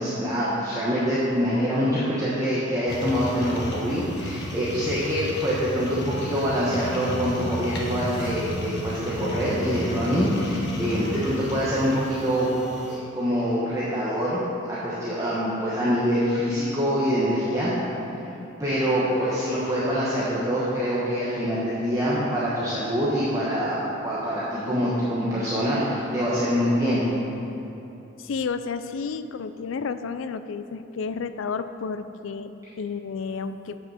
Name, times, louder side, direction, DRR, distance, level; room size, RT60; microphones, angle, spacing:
voice 1, 0.0-12.5 12.9-14.4 14.7-17.7 18.6-27.1, equal, 15° right, -9 dB, 1.2 m, -25 dB
sound 1, 2.9-13.0, equal, 55° left, 1.3 m, -33 dB
voice 2, 28.2-33.8, left 5 dB, 75° left, 11 dB, 0.4 m, -31 dB
8.1 x 6.2 x 6.3 m, 3.0 s
head